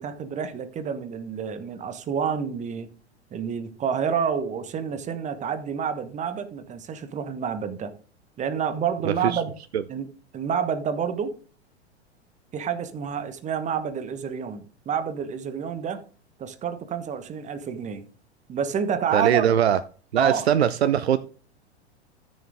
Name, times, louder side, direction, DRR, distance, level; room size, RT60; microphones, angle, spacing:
voice 1, 0.0-2.9 3.3-7.9 8.4-9.5 9.9-10.1 10.3-11.3 12.5-16.0 16.4-18.0 18.5-19.5 20.2-20.4, right 7 dB, 20° right, 1.2 m, -28 dB
voice 2, 9.0-9.4 9.7-9.8 19.1-19.8 20.1-21.2, right 9 dB, 65° right, 0.7 m, -21 dB
14.0 x 6.5 x 3.5 m
figure-of-eight pair, 95°, 34 cm